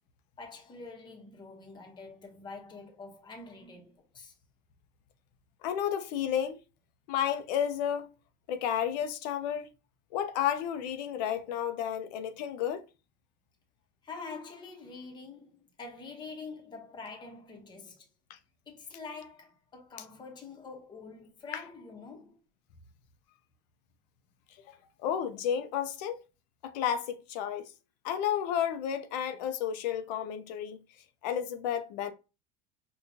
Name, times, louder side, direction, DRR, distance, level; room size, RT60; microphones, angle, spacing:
voice 1, 0.4-4.3 14.0-18.1 18.7-22.4, left 4 dB, 20° left, 0.8 m, -46 dB
voice 2, 5.6-6.6 7.1-8.1 8.5-9.7 10.1-12.8 18.3-18.4 21.5-21.6 25.0-26.2 26.6-27.7 28.0-30.8 31.2-32.1, left 9 dB, 90° left, 0.6 m, -31 dB
4.7 x 2.3 x 2.6 m
supercardioid pair, 130°, 21 cm